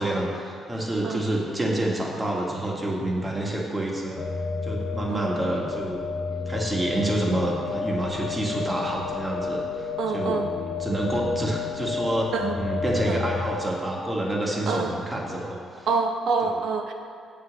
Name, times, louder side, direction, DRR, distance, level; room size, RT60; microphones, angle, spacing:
voice 1, 0.0-4.3 4.6-6.0 6.5-10.4 10.8-15.9 16.4-16.5, right 1 dB, 20° right, -3 dB, 1.8 m, -28 dB
sound 1, 4.2-13.5, left 5 dB, 55° left, 1.1 m, -31 dB
voice 2, 10.0-10.5 12.3-12.6 13.1-13.2 14.7-14.9 15.9-16.9, right 4 dB, 65° right, 3 dB, 0.8 m, -26 dB
7.6 x 5.1 x 7.3 m, 2.3 s
cardioid pair, 90°, 0 cm